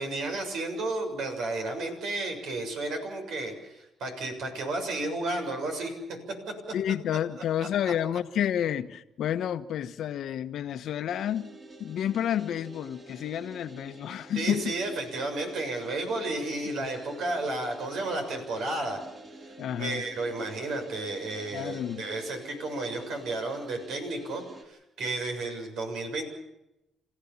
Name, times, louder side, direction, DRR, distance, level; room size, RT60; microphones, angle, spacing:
voice 1, 0.0-6.0 7.9-8.0 14.3-19.0 19.8-26.2, right 2 dB, 75° right, 7.0 m, -32 dB
voice 2, 6.7-11.5 11.8-14.6 19.6-20.0 21.5-22.1, left 10 dB, 75° left, 1.2 m, -30 dB
sound 1, 11.1-24.6, right 1 dB, 35° right, 4.5 m, -48 dB
29.0 x 15.5 x 7.3 m
cardioid pair, 90°, 0 cm